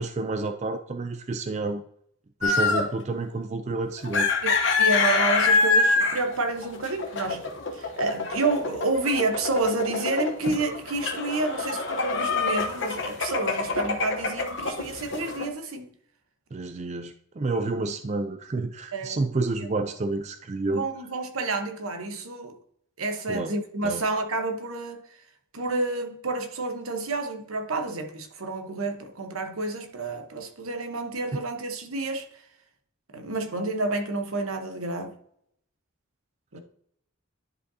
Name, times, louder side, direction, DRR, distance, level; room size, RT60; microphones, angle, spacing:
voice 1, 0.0-1.8 2.4-4.3 16.5-20.8 23.3-23.5 23.8-24.0 31.3-31.4, right 3 dB, 30° right, 0.4 m, -29 dB
sound 1, 2.4-3.0 4.0-15.5, left 4 dB, 60° left, 1.0 m, -26 dB
voice 2, 4.4-15.9 18.9-19.2 19.6-19.7 20.7-22.6 23.0-25.0 25.5-32.3 33.1-35.1 36.5-36.6, right 2 dB, 85° right, 1.1 m, -29 dB
11.0 x 5.1 x 2.8 m
head